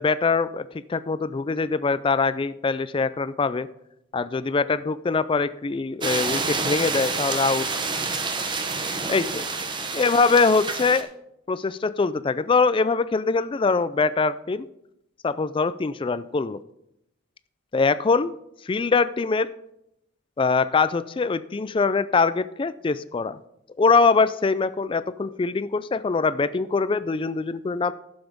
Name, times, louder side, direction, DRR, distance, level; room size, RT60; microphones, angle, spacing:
voice 1, 0.0-3.7 4.1-7.7 9.1-9.4 9.9-11.1 11.5-14.7 15.2-16.6 17.7-18.3 18.6-19.5 20.4-23.4 23.8-27.9, left 4 dB, 25° left, 15 dB, 0.3 m, -23 dB
sound 1, 6.0-11.0, right 4 dB, 25° right, 0.8 m, -28 dB
11.5 x 7.1 x 5.3 m, 0.81 s
head